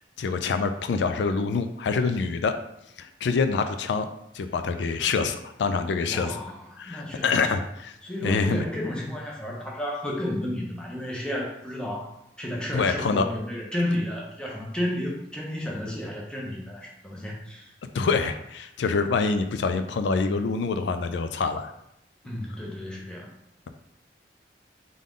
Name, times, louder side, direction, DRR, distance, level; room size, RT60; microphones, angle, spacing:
voice 1, 0.2-2.5 3.0-4.1 4.3-6.4 6.8-7.9 8.2-8.7 12.7-13.3 17.9-21.7, left 4 dB, 85° left, 8 dB, 0.4 m, -26 dB
voice 2, 6.0-7.6 8.0-17.7 22.2-23.3, left 1 dB, 5° left, -3 dB, 0.9 m, -32 dB
3.8 x 3.7 x 3.6 m, 0.82 s
head